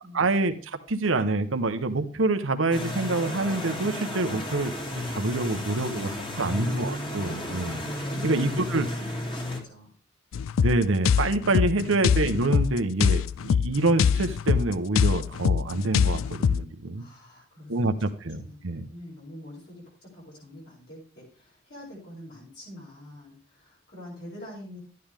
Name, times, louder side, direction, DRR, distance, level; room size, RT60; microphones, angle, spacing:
voice 1, 0.1-4.7 5.1-7.8 8.2-8.9 10.6-17.0 17.7-18.9, right 2 dB, 80° right, 8 dB, 0.9 m, -26 dB
sound 1, 2.7-9.6, left 1 dB, 25° left, 2.0 m, -33 dB
voice 2, 5.5-5.9 8.0-9.9 11.7-11.8 17.0-24.8, left 1 dB, 55° left, -6 dB, 6.1 m, -45 dB
sound 2, 10.3-16.6, left 7 dB, 85° left, 0.4 m, -24 dB
12.0 x 9.4 x 3.5 m, 0.41 s
head